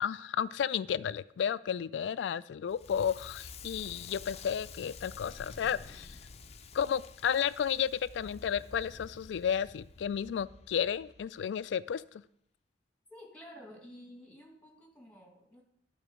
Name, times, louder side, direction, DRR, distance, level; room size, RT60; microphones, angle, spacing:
voice 1, 0.0-6.2 6.7-12.2, left 8 dB, 85° left, 17 dB, 0.3 m, -32 dB
Crackle, 2.7-11.7, left 4 dB, 35° left, 0.5 m, -50 dB
voice 2, 13.1-15.6, equal, 10° left, 1 dB, 1.8 m, -51 dB
12.0 x 4.4 x 5.0 m, 0.73 s
head